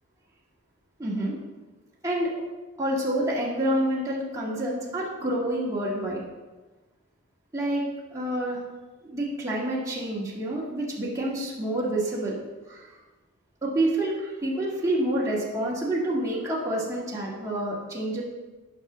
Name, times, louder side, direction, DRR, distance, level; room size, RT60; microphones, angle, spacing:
voice 1, 1.0-1.3 2.0-2.3 2.8-6.2 7.5-8.6 9.0-12.4 12.7-12.9 13.6-18.2, right 1 dB, 15° right, -6 dB, 1.8 m, -28 dB
11.0 x 5.3 x 4.0 m, 1.2 s
head